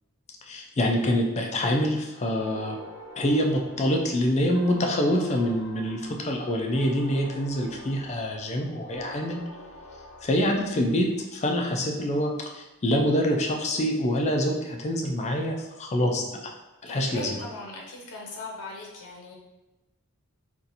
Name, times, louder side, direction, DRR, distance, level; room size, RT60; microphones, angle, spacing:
voice 1, 0.5-2.8 3.2-9.4 10.2-16.5 16.8-17.4, equal, 30° left, 2 dB, 0.4 m, -26 dB
sound 1, 2.4-11.1, left 1 dB, 60° left, 0.8 m, -45 dB
voice 2, 16.9-19.3, left 2 dB, 90° left, -1 dB, 0.7 m, -39 dB
2.7 x 2.5 x 4.0 m, 1.1 s
head